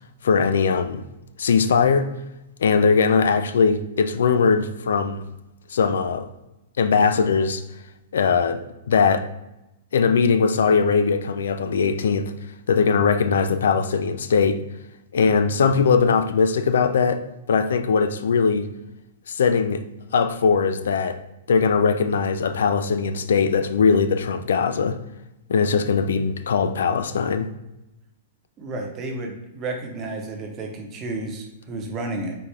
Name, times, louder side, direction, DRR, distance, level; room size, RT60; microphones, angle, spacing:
voice 1, 0.2-1.0 1.4-2.1 2.6-5.2 5.7-6.3 6.8-7.6 8.1-8.6 8.9-9.3 9.9-12.3 12.7-14.6 15.1-18.7 19.3-19.8 20.1-21.2 21.5-25.0 25.5-27.5, left 5 dB, 90° left, 0.4 m, -20 dB
voice 2, 28.6-32.4, right 2 dB, 20° right, 0.6 m, -31 dB
4.2 x 3.5 x 3.3 m
hypercardioid pair, 180°, 0 cm